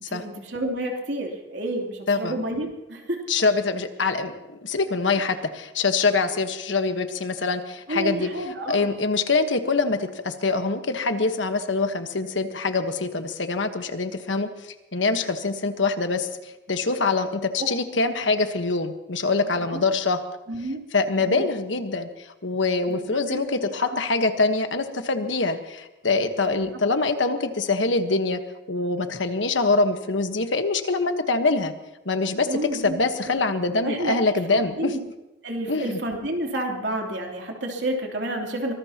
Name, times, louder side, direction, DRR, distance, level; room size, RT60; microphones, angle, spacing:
voice 1, 0.1-3.2 7.9-8.9 17.6-17.7 19.4-19.8 20.5-20.8 21.2-21.4 22.9-23.4 23.8-24.0 26.5-26.6 32.5-33.0 33.8-34.2 34.5-35.0 35.4-38.7, right 1 dB, 65° right, 1 dB, 3.2 m, -30 dB
voice 2, 2.1-2.4 3.3-8.3 8.7-20.2 20.9-28.4 28.7-31.7 32.0-34.9 35.7-36.0, left 3 dB, 75° left, 7 dB, 1.3 m, -24 dB
24.5 x 19.5 x 2.9 m, 0.99 s
head